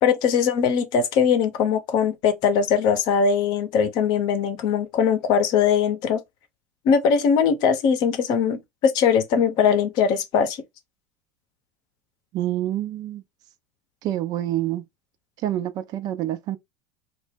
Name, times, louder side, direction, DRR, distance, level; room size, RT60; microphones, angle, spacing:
voice 1, 0.0-6.2 6.8-10.6, left 7 dB, 55° left, 0.6 m, -21 dB
voice 2, 12.3-13.2 14.0-14.8 15.4-16.6, right 13 dB, 45° right, 0.4 m, -27 dB
2.1 x 2.0 x 3.2 m
hypercardioid pair, 75°, 9 cm